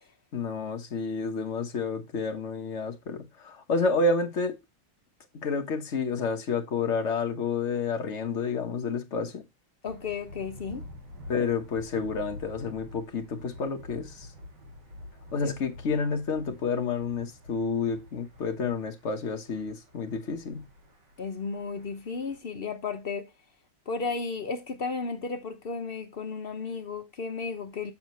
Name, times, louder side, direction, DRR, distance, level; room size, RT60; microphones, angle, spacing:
voice 1, 0.3-4.6 5.3-9.4 11.3-14.3 15.3-20.7, left 4 dB, 45° left, 1.1 m, -30 dB
voice 2, 9.8-10.8 15.4-15.5 21.2-23.3 23.9-27.9, left 4 dB, 75° left, 0.5 m, -34 dB
Thunder, 9.9-22.4, left 1 dB, 60° right, 2.9 m, -48 dB
7.2 x 7.1 x 3.0 m
omnidirectional pair, 2.1 m